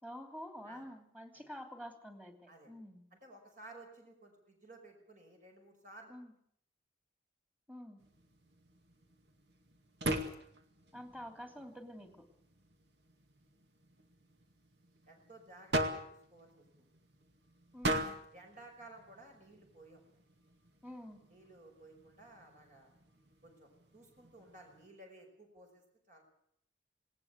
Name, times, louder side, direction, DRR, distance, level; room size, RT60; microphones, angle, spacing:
voice 1, 0.0-3.0 6.1-6.3 7.7-8.0 10.9-12.3 17.7-18.2 20.8-21.2, equal, 10° right, 6 dB, 2.9 m, -48 dB
voice 2, 3.1-6.1 15.1-16.9 18.3-20.0 21.3-22.9 23.4-26.2, right 2 dB, 50° right, 2 dB, 5.5 m, -56 dB
sound 1, 8.0-24.9, right 1 dB, 70° right, 2.2 m, -43 dB
19.5 x 18.5 x 8.2 m, 0.68 s
head